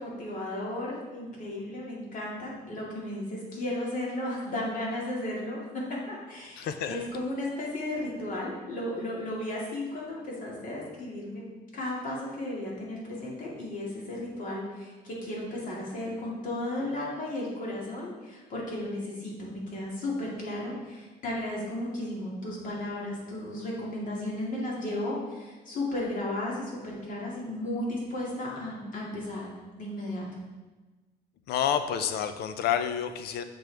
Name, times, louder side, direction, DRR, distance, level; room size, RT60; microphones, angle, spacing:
voice 1, 0.0-11.4 11.7-30.2, left 1 dB, 50° left, -4 dB, 2.2 m, -34 dB
voice 2, 6.6-7.1 31.5-33.4, left 9 dB, 70° left, 9 dB, 0.5 m, -29 dB
7.4 x 5.2 x 3.4 m, 1.2 s
cardioid pair, 110°, 17 cm